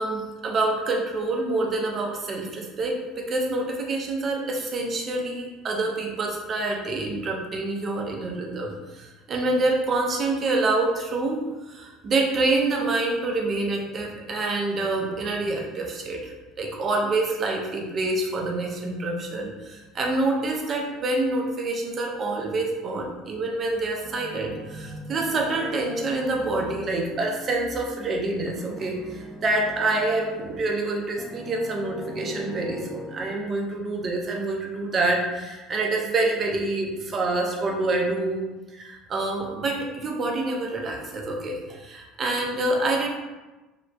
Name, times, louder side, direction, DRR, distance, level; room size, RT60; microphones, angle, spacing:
voice 1, 0.0-16.3 16.6-38.4 38.7-43.1, right 2 dB, 35° right, 0 dB, 0.6 m, -27 dB
sound 1, 24.0-30.7 31.1-33.3, left 2 dB, 20° left, 0.6 m, -41 dB
3.1 x 2.9 x 2.6 m, 1.1 s
figure-of-eight pair, 60°, 0 cm